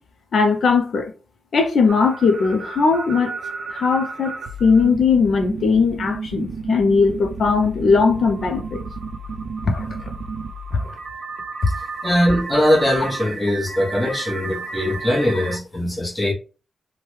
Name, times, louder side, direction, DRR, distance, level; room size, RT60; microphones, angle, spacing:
voice 1, 0.3-1.1 1.5-3.4 3.7-4.4 4.6-8.8 9.6-10.1 10.7-10.9, left 4 dB, 60° left, 0.4 m, -19 dB
sound 1, 1.9-15.6, right 4 dB, 65° right, 0.4 m, -32 dB
voice 2, 12.0-16.3, left 1 dB, 10° left, 0.9 m, -21 dB
3.1 x 2.1 x 3.0 m
wide cardioid pair, 165°, 0 cm